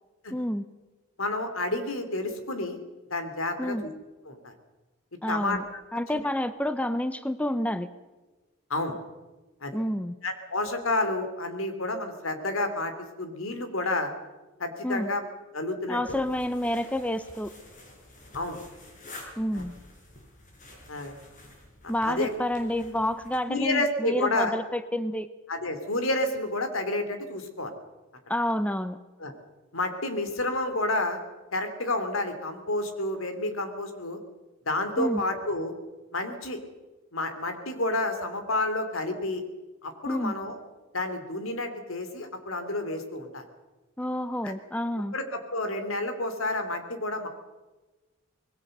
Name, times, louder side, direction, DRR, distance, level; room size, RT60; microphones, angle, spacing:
voice 1, 0.3-0.7 3.6-3.9 5.2-5.6 5.9-7.9 9.7-10.1 14.8-15.1 15.9-17.5 19.4-19.7 21.9-25.3 28.3-29.0 35.0-35.2 40.1-40.4 44.0-45.1, left 1 dB, 5° left, 12 dB, 0.7 m, -29 dB
voice 2, 1.2-2.8 3.1-3.9 4.2-4.5 5.3-5.8 6.1-6.2 8.7-8.9 9.6-9.8 10.2-12.9 13.2-14.1 14.6-15.2 15.5-16.3 18.3-18.6 19.5-19.6 20.9-21.2 22.0-22.3 23.5-24.5 25.5-27.7 29.2-29.3 29.7-31.2 31.5-34.2 34.6-35.7 36.1-36.6 37.1-39.4 39.8-40.6 40.9-43.4 44.4-44.5 45.1-47.3, left 2 dB, 80° left, 8 dB, 3.2 m, -30 dB
sound 1, 16.0-23.4, left 2 dB, 40° left, 5.4 m, -49 dB
25.0 x 21.0 x 6.7 m, 1.2 s
head